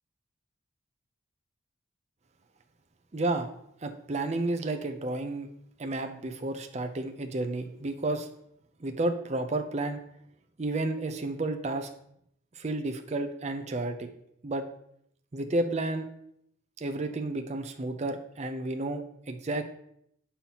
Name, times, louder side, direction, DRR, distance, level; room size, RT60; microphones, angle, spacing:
voice 1, 3.1-3.5 3.8-5.5 5.8-8.3 8.8-10.0 10.6-11.9 12.6-14.1 14.4-14.6 15.3-16.0 16.8-19.0 19.3-19.6, right 2 dB, 35° right, 6 dB, 0.5 m, -31 dB
7.2 x 5.6 x 2.9 m, 0.72 s
head